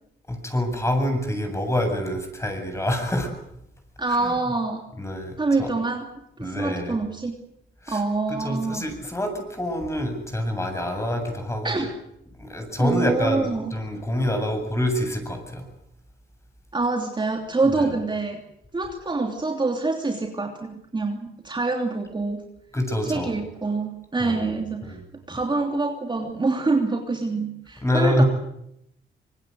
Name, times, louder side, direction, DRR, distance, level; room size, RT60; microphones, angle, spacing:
voice 1, 0.3-3.3 4.2-4.3 5.0-5.7 6.4-7.0 7.8-8.0 8.3-11.8 12.4-15.7 17.7-17.9 22.7-23.3 24.2-24.4 24.8-25.0 27.8-28.2, left 1 dB, 15° left, 5 dB, 7.6 m, -26 dB
voice 2, 4.0-4.8 5.4-6.1 6.4-7.4 7.9-8.8 11.6-11.9 12.8-13.7 16.7-18.4 18.7-22.4 23.0-25.0 25.3-28.2, right 3 dB, 25° right, 3 dB, 3.1 m, -26 dB
25.5 x 20.5 x 8.0 m, 0.78 s
cardioid pair, 90°, 20 cm